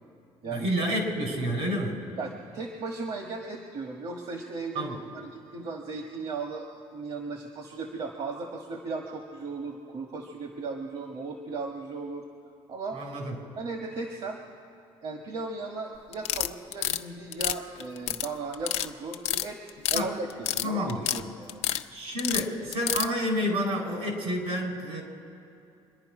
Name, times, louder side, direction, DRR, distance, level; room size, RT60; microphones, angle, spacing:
voice 1, 0.5-2.0 4.7-5.0 12.9-13.5 19.9-20.1 20.6-21.1 21.9-25.0, equal, 85° right, 1 dB, 4.4 m, -29 dB
voice 2, 2.2-12.2 12.7-13.0 13.5-14.4 15.0-21.6, right 3 dB, 65° right, 3 dB, 1.4 m, -36 dB
sound 1, 16.1-17.0 17.3-18.3 18.5-18.9 19.1-20.0 20.3-21.2 21.5-21.8 22.2-23.1, left 12 dB, 85° left, 0.6 m, -28 dB
25.5 x 11.0 x 4.9 m, 2.7 s
cardioid pair, 110°, 10 cm